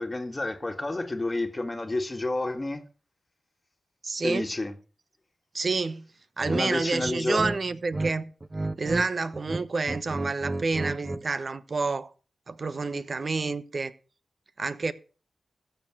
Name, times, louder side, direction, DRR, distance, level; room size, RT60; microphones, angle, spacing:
voice 1, 0.0-2.8 4.2-4.7 6.4-7.4, left 2 dB, 30° left, 1.7 m, -30 dB
voice 2, 4.0-4.5 5.5-6.1 6.4-8.3 8.8-12.1 12.5-13.9 14.6-14.9, right 3 dB, 55° right, 1.0 m, -29 dB
sound 1, 6.4-6.6 7.0-8.1 8.4-9.1 9.3-11.3, right 2 dB, 30° right, 0.9 m, -32 dB
14.5 x 7.0 x 6.2 m
supercardioid pair, 40°, 0 cm